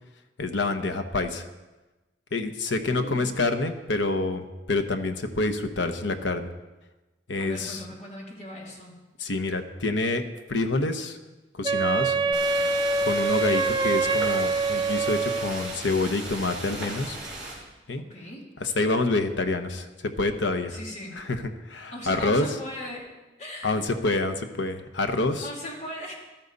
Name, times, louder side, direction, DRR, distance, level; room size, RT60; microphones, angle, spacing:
voice 1, 0.4-1.5 2.3-6.5 7.3-7.8 9.2-10.2 10.5-11.2 11.5-12.2 13.0-17.2 17.9-18.0 18.6-20.8 21.2-21.4 21.7-22.4 23.6-25.5, left 2 dB, 75° left, 8 dB, 1.0 m, -27 dB
voice 2, 2.8-3.4 7.4-8.9 12.0-12.6 18.0-18.5 20.7-21.2 21.9-23.1 23.4-24.2 25.4-26.1, equal, 40° left, -2 dB, 3.0 m, -39 dB
Wind instrument woodwind instrument, 11.6-15.7, right 4 dB, 25° right, 0.4 m, -25 dB
sound 1, 12.3-17.5, right 2 dB, 5° right, 4.8 m, -37 dB
15.0 x 12.5 x 4.0 m, 1.1 s
head